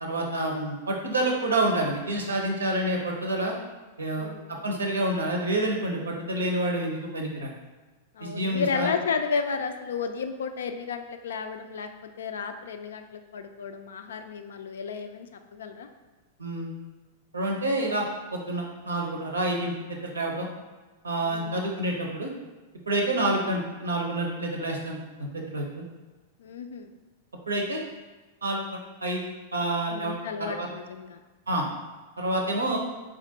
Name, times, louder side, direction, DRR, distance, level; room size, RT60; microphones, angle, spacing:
voice 1, 0.0-3.5 4.0-4.3 4.6-7.5 8.2-8.9 16.4-16.7 17.3-18.0 18.3-20.5 21.0-22.3 22.9-25.8 27.5-27.8 28.4-29.2 29.5-30.1 30.4-30.7 31.5-31.6 32.2-32.8, right 1 dB, 85° right, 1 dB, 0.6 m, -28 dB
voice 2, 4.2-4.5 8.1-15.9 21.2-21.6 26.4-26.9 29.9-31.2, left 5 dB, 70° left, 7 dB, 0.3 m, -33 dB
4.3 x 2.5 x 2.7 m, 1.2 s
figure-of-eight pair, 100°, 0 cm